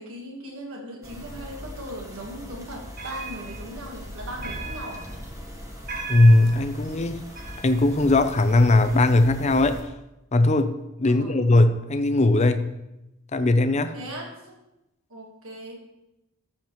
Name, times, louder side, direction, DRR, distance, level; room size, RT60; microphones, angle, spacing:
voice 1, 0.0-5.1 11.1-11.5 13.9-14.6 15.1-15.8, equal, 75° right, 0 dB, 1.6 m, -38 dB
sound 1, 1.0-9.8, equal, 15° right, 1.3 m, -40 dB
sound 2, 2.8-9.2, right 4 dB, 45° right, 1.4 m, -40 dB
voice 2, 6.1-7.2 7.6-9.8 10.3-10.7 11.0-12.7 13.3-13.9, left 2 dB, 30° left, 9 dB, 0.6 m, -19 dB
14.0 x 7.3 x 3.1 m, 0.91 s
head